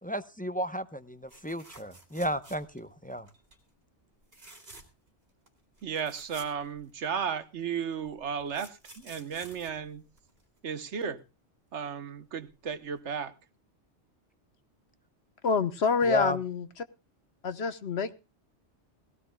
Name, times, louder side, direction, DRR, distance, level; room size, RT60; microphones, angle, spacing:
voice 1, 0.0-3.3 16.0-16.4, equal, 10° left, 0.6 m, -33 dB
sound 1, 1.3-2.9 3.3-3.6 4.2-5.1 5.5-5.6 5.8-7.3 8.0-10.6 12.5-12.7 13.0-13.1, right 1 dB, 60° right, 2.9 m, -52 dB
voice 2, 5.8-10.0 10.6-11.2 11.7-13.3, right 7 dB, 80° right, 1.3 m, -34 dB
voice 3, 15.4-16.7 17.4-18.1, left 5 dB, 65° left, 1.3 m, -27 dB
19.5 x 17.5 x 2.2 m
omnidirectional pair, 1.2 m